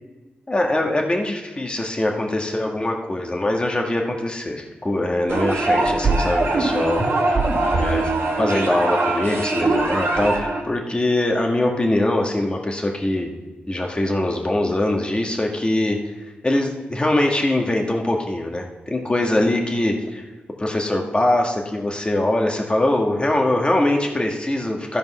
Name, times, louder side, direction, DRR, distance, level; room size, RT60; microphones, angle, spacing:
voice 1, 0.5-7.0 7.8-8.1 8.4-13.3 13.7-16.1 16.4-20.3 20.6-25.0, left 1 dB, 25° left, 1 dB, 1.9 m, -22 dB
sound 1, 5.3-10.6, right 2 dB, 70° right, 2.1 m, -21 dB
13.0 x 5.4 x 5.6 m, 1.2 s
cardioid pair, 60°, 4 cm